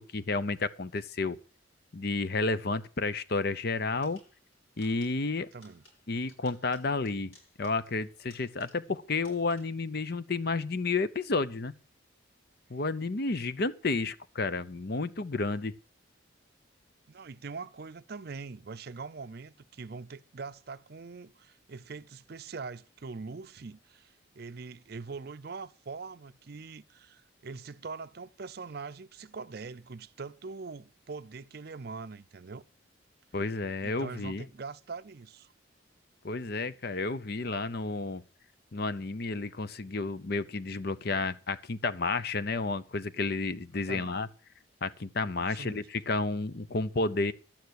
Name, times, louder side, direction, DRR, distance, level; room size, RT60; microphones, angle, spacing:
voice 1, 0.0-1.4 1.9-4.2 4.8-5.5 6.1-11.7 12.7-15.7 33.3-34.4 36.2-38.2 38.7-44.3 44.8-47.3, left 3 dB, 50° left, 0.7 m, -31 dB
sound 1, 4.0-9.0 9.2-9.9, left 2 dB, 90° left, 6.5 m, -61 dB
voice 2, 5.4-5.8 17.1-32.6 33.8-35.5 43.7-44.2 45.4-45.9, right 4 dB, 50° right, 0.5 m, -43 dB
11.5 x 9.3 x 6.3 m
head